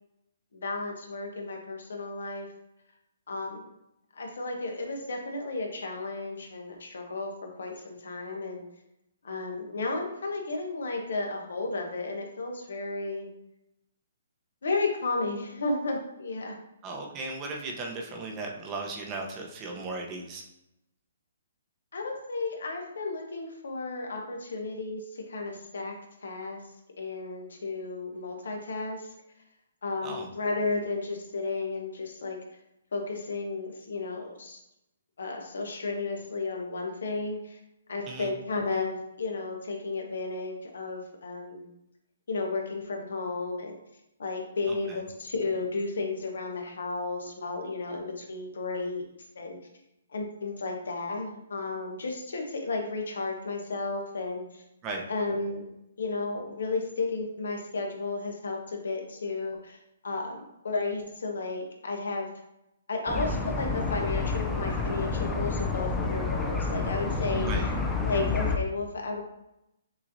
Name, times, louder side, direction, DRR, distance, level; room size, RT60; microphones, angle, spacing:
voice 1, 0.5-2.5 3.3-3.7 4.1-7.3 7.6-8.6 9.2-13.3 14.6-16.5 21.9-26.0 26.2-26.6 27.0-29.1 29.8-32.4 32.9-34.6 35.2-37.6 37.9-41.7 42.3-43.8 44.2-49.0 49.4-49.6 50.1-54.6 55.1-55.6 56.0-59.8 60.0-60.4 60.6-62.3 62.9-67.5 68.0-69.2, left 3 dB, 75° left, 2 dB, 1.0 m, -33 dB
voice 2, 16.8-20.4 30.0-30.3 38.1-38.3 44.7-45.0 54.8-55.0 67.4-67.7, right 3 dB, 25° right, 1 dB, 0.8 m, -36 dB
sound 1, 63.1-68.6, left 3 dB, 10° left, 0.5 m, -29 dB
6.1 x 2.8 x 2.7 m, 0.84 s
hypercardioid pair, 140°, 0 cm